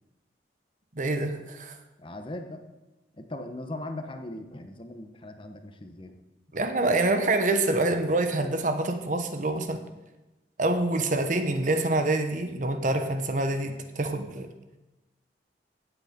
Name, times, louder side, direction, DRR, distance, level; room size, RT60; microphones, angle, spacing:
voice 1, 0.9-1.8 6.5-9.8 10.6-14.5, right 2 dB, 45° right, 7 dB, 1.1 m, -26 dB
voice 2, 2.0-2.6 3.2-6.2, left 1 dB, 30° left, 6 dB, 1.1 m, -39 dB
16.0 x 8.3 x 5.2 m, 1.0 s
head